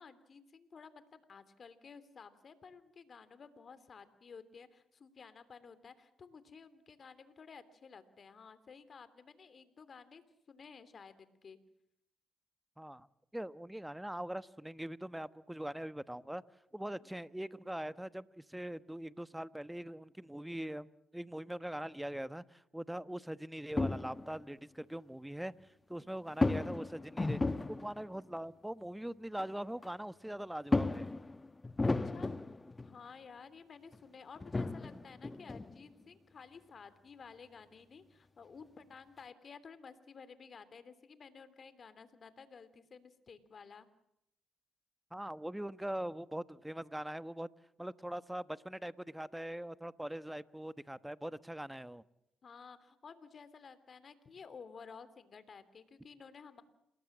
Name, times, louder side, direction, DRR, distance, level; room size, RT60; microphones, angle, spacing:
voice 1, 0.0-10.2 10.5-11.6 16.7-17.1 25.9-26.2 31.8-32.3 32.8-43.9 52.4-56.6, left 5 dB, 50° left, 3.1 m, -54 dB
voice 2, 12.8-13.1 13.3-16.4 16.7-25.5 25.9-27.4 27.7-31.1 45.1-47.5 47.8-52.0, right 1 dB, 5° right, 1.1 m, -42 dB
sound 1, 23.7-24.5 26.3-28.2 29.4-29.5 29.8-29.9 30.7-33.0 33.9-34.0 34.4-35.9, left 2 dB, 25° left, 1.3 m, -34 dB
28.0 x 20.5 x 7.4 m
supercardioid pair, 55°, 0 cm